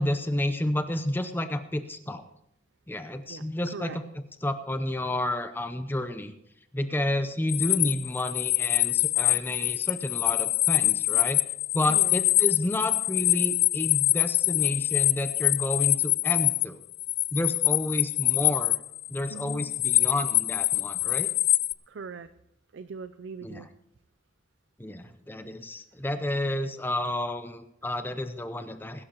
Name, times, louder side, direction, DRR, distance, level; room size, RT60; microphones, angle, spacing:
voice 1, 0.0-2.2 2.9-4.0 4.4-6.3 6.7-11.4 11.7-16.8 17.3-18.8 19.1-21.3 23.4-23.6 24.8-29.0, left 1 dB, 10° left, 9 dB, 0.6 m, -30 dB
sound 1, 7.5-16.7 16.9-21.7, left 16 dB, 55° left, 0.3 m, -25 dB
voice 2, 11.9-12.3 19.3-19.7 21.9-22.3 22.7-23.7, right 5 dB, 75° right, 12 dB, 0.5 m, -40 dB
21.0 x 11.5 x 3.0 m, 0.81 s
head